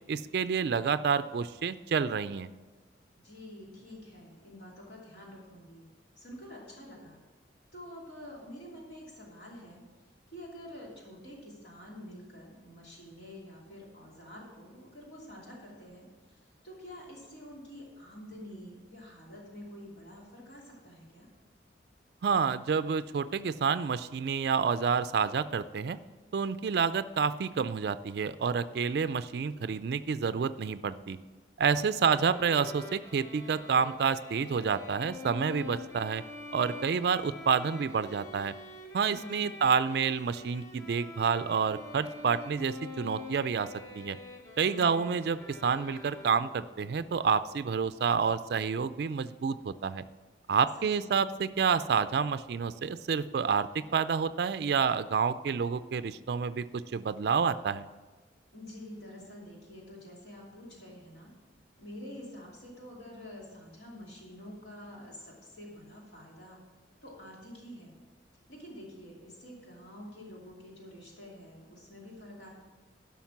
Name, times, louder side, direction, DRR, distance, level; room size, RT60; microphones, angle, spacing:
voice 1, 0.1-2.5 22.2-26.0 26.3-31.2 31.6-36.2 36.5-38.5 38.9-43.7 43.9-44.2 44.6-50.0 50.5-57.9, right 6 dB, 60° right, 13 dB, 0.3 m, -29 dB
voice 2, 3.1-5.9 6.2-7.2 7.7-9.8 10.3-21.3 32.1-32.2 39.1-39.6 44.6-45.2 50.8-51.2 58.5-61.3 61.8-66.6 67.0-67.9 68.5-72.5, equal, 65° left, -3 dB, 2.8 m, -48 dB
Bowed string instrument, 32.1-46.7, left 2 dB, 15° left, 0.8 m, -46 dB
11.5 x 5.8 x 5.9 m, 1.3 s
head